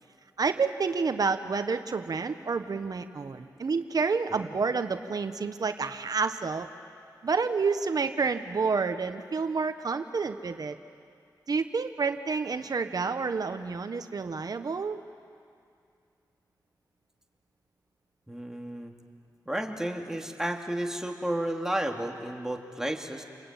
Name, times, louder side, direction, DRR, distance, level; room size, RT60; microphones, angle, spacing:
voice 1, 0.4-6.7 7.2-10.8 11.5-15.0, right 4 dB, 60° right, 9 dB, 1.3 m, -29 dB
voice 2, 4.3-4.6 18.3-18.9 19.5-23.2, right 1 dB, 5° right, 2 dB, 2.9 m, -32 dB
29.5 x 22.0 x 9.2 m, 2.4 s
cardioid pair, 60°, 7 cm